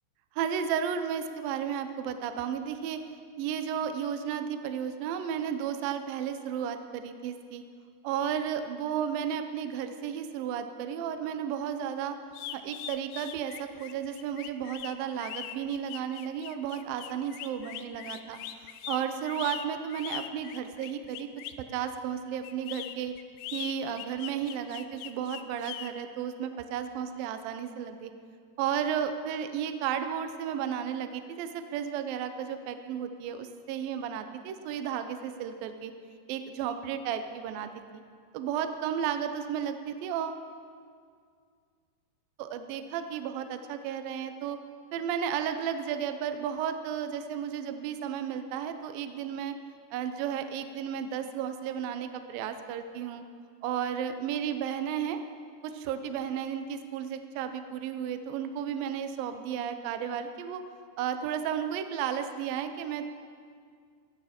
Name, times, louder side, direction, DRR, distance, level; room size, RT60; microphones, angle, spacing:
voice 1, 0.4-3.0 3.4-7.6 8.0-12.2 12.5-21.3 21.6-23.1 23.5-28.1 28.6-35.9 36.3-38.0 38.3-40.5 42.4-44.6 44.9-49.6 49.9-53.2 53.6-55.2 55.6-60.6 61.0-63.1, right 8 dB, 85° right, 8 dB, 2.0 m, -33 dB
sound 1, 12.3-21.6 22.4-25.9, left 12 dB, 80° left, 2.6 m, -41 dB
18.5 x 13.5 x 4.4 m, 2.1 s
omnidirectional pair, 5.2 m